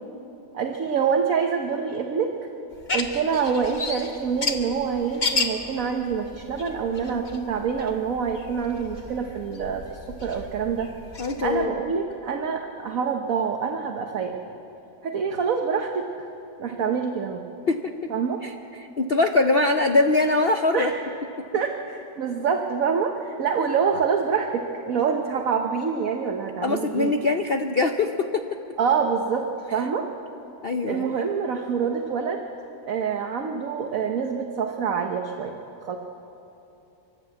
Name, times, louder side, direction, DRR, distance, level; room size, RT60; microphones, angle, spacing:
voice 1, 0.5-2.4 2.9-10.9 11.4-14.4 15.0-16.3 16.6-17.4 18.1-18.4 20.7-20.9 21.5-27.1 28.8-30.1 30.9-32.5 32.9-35.6 35.8-36.0, right 6 dB, 55° right, 4 dB, 1.3 m, -26 dB
sound 1, 2.7-11.7, left 3 dB, 30° left, 1.1 m, -33 dB
voice 2, 11.2-11.7 17.7-17.9 18.4-18.5 18.8-20.9 26.6-28.6 30.6-31.1, left 3 dB, 65° left, 5 dB, 0.5 m, -22 dB
30.0 x 11.0 x 8.2 m, 3.0 s
omnidirectional pair, 2.0 m